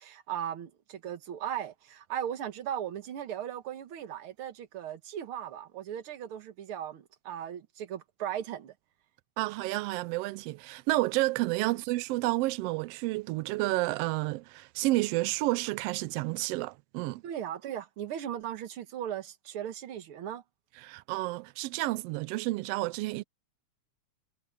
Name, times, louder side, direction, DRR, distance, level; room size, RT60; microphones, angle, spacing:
voice 1, 0.0-8.7 11.7-11.8 17.2-20.4, right 10 dB, 55° right, 1.9 m, -37 dB
voice 2, 9.4-17.2 20.8-23.2, right 19 dB, 90° right, 1.3 m, -30 dB
omnidirectional pair, 3.3 m